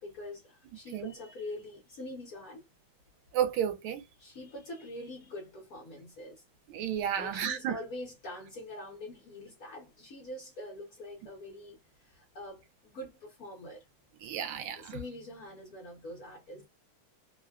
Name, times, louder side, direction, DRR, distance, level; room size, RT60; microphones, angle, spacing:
voice 1, 0.0-2.6 4.2-6.4 7.2-13.8 14.8-16.7, left 1 dB, 60° left, 0.9 m, -44 dB
voice 2, 3.3-4.0 6.7-7.7 14.2-15.0, right 9 dB, 85° right, 1.4 m, -32 dB
3.4 x 2.2 x 2.2 m
omnidirectional pair, 2.3 m